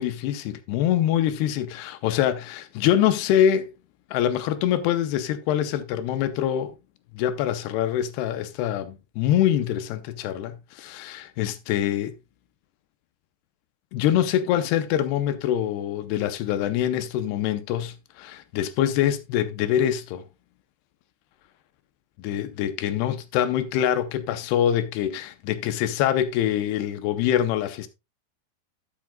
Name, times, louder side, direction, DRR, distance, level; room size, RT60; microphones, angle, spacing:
voice 1, 0.0-3.7 4.1-6.7 7.1-12.1 13.9-20.2 22.2-27.9, left 10 dB, 80° left, 2.8 m, -24 dB
13.0 x 7.5 x 2.2 m
omnidirectional pair, 4.7 m